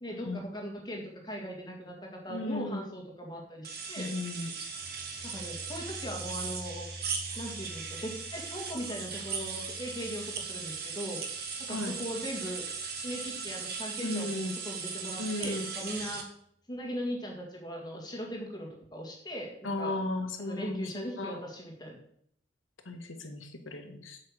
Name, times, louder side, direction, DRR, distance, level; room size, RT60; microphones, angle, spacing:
voice 1, 0.0-4.1 5.2-6.9 7.3-11.2 11.6-12.6 12.9-16.3 16.7-20.0 20.4-22.0, equal, 20° left, 0 dB, 1.9 m, -39 dB
voice 2, 2.3-2.9 4.0-4.5 11.7-11.9 14.0-14.6 15.2-15.7 19.6-21.4 22.8-24.2, left 2 dB, 90° left, 5 dB, 1.4 m, -35 dB
sound 1, 3.6-16.2, right 5 dB, 50° right, 1.5 m, -38 dB
sound 2, 4.7-13.5, equal, 75° right, 1.8 m, -49 dB
7.9 x 5.7 x 7.5 m, 0.68 s
head